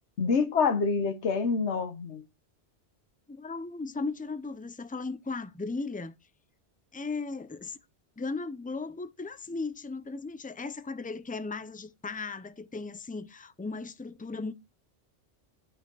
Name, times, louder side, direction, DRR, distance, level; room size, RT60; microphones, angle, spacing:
voice 1, 0.2-2.2, left 5 dB, 75° left, 1.4 m, -26 dB
voice 2, 3.3-6.1 6.9-7.8 8.2-14.5, left 3 dB, 15° left, 0.3 m, -36 dB
10.5 x 5.8 x 4.6 m
omnidirectional pair, 1.2 m